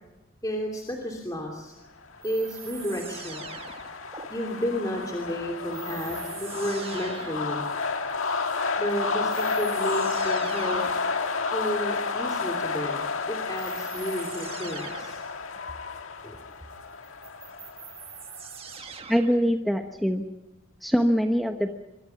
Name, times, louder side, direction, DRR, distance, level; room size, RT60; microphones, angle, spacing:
voice 1, 0.4-1.8 2.2-3.5 4.3-7.6 8.8-10.8 11.5-15.2 16.2-16.4, equal, 20° left, 1 dB, 2.9 m, -32 dB
sound 1, 2.1-18.8, left 4 dB, 90° left, 1.8 m, -31 dB
sound 2, 2.2-4.3 5.7-7.6 8.8-8.9 9.3-11.2 13.5-15.3 17.0-19.5, right 7 dB, 30° right, 1.6 m, -43 dB
voice 2, 19.1-20.3 20.8-21.7, equal, ahead, 4 dB, 1.1 m, -23 dB
26.5 x 23.5 x 5.8 m, 0.98 s
head